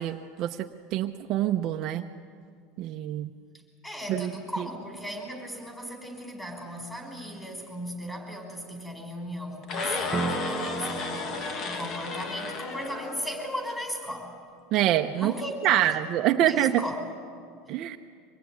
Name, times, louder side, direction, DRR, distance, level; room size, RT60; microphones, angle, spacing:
voice 1, 0.0-2.1 2.8-3.3 4.1-4.3 4.6-4.7 14.7-15.3 15.6-16.8 17.7-18.0, right 13 dB, 45° right, 5 dB, 0.8 m, -25 dB
voice 2, 3.8-14.3 15.1-16.0 16.4-17.0, equal, 5° left, 3 dB, 5.1 m, -36 dB
sound 1, 9.6-13.8, left 4 dB, 35° left, 1.6 m, -33 dB
sound 2, 10.1-13.0, right 4 dB, 10° right, 1.0 m, -35 dB
25.0 x 20.5 x 9.6 m, 2.2 s
supercardioid pair, 145°, 0 cm